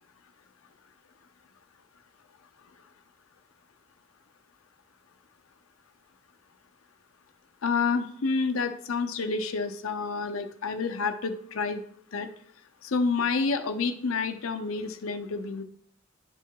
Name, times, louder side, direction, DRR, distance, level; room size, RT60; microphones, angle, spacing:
voice 1, 7.6-11.8 12.1-12.3 12.8-15.6, left 4 dB, 80° left, 7 dB, 0.6 m, -29 dB
11.5 x 4.6 x 2.3 m, 0.66 s
head